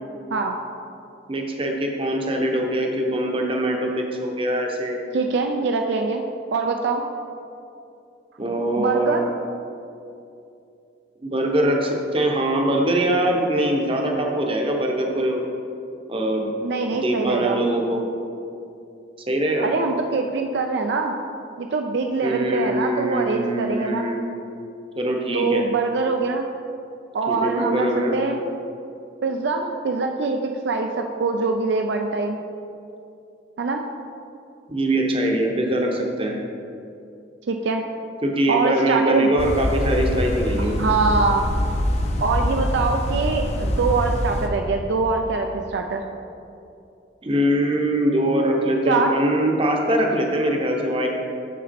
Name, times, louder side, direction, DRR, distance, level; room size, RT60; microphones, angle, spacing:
voice 1, 1.3-5.0 8.4-9.2 11.2-15.4 16.1-16.5 16.9-18.0 19.3-19.7 22.2-24.2 25.0-25.6 27.3-28.2 34.7-36.3 38.2-40.9 47.2-51.1, right 1 dB, 30° right, 1 dB, 0.8 m, -22 dB
voice 2, 5.1-6.2 6.5-7.0 8.7-9.3 16.6-17.6 19.6-21.1 21.6-24.1 25.3-26.5 27.1-28.4 29.2-32.4 33.6-33.8 37.5-37.8 38.5-39.3 40.6-41.4 42.2-46.0 48.9-49.1, right 4 dB, 65° right, 4 dB, 0.4 m, -23 dB
sound 1, 39.4-44.5, left 1 dB, 35° left, 0.6 m, -24 dB
6.8 x 6.1 x 4.2 m, 2.6 s
head